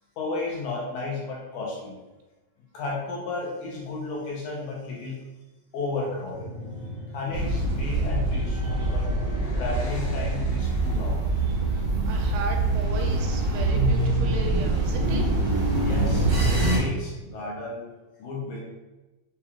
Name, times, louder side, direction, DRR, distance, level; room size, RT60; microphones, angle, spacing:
voice 1, 0.2-2.0 2.7-5.3 5.7-6.5 7.1-9.1 9.6-11.2 15.8-16.3 16.6-17.9 18.2-18.6, left 3 dB, 75° left, -3 dB, 1.9 m, -33 dB
sound 1, 5.9-11.2, left 1 dB, 55° left, 2.0 m, -40 dB
sound 2, 7.3-16.8, right 2 dB, 70° right, 1.0 m, -24 dB
voice 2, 11.7-15.2, right 3 dB, 90° right, 3 dB, 2.4 m, -35 dB
6.9 x 2.9 x 2.4 m, 1.1 s
omnidirectional pair, 4.1 m